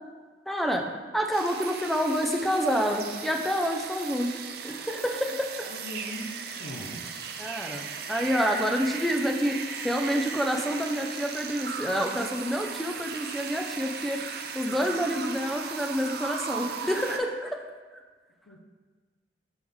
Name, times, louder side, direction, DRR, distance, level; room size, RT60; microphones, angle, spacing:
voice 1, 0.5-0.8 1.1-4.3 4.6-5.7 7.4-9.6 9.8-14.2 14.5-17.6 17.9-18.0, equal, ahead, 2 dB, 0.5 m, -28 dB
sound 1, 1.3-17.2, right 6 dB, 60° right, 0.5 m, -37 dB
voice 2, 5.6-7.1 18.5-18.6, left 1 dB, 70° left, -2 dB, 0.8 m, -40 dB
6.2 x 5.2 x 3.5 m, 1.4 s
head